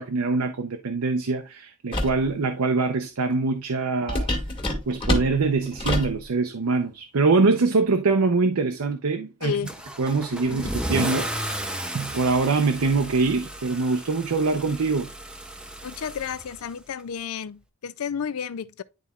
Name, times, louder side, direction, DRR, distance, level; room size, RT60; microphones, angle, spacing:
voice 1, 0.0-4.3 4.9-9.5 10.0-15.1, right 3 dB, 85° right, 0.7 m, -24 dB
sound 1, 1.9-2.2 4.1-6.2, left 1 dB, 25° left, 1.6 m, -26 dB
voice 2, 9.4-9.9 10.3-10.8 15.8-18.8, left 7 dB, 80° left, 0.4 m, -32 dB
Car / Engine starting / Accelerating revving vroom, 9.6-17.0, right 1 dB, 5° right, 0.5 m, -34 dB
11.0 x 4.1 x 2.3 m
head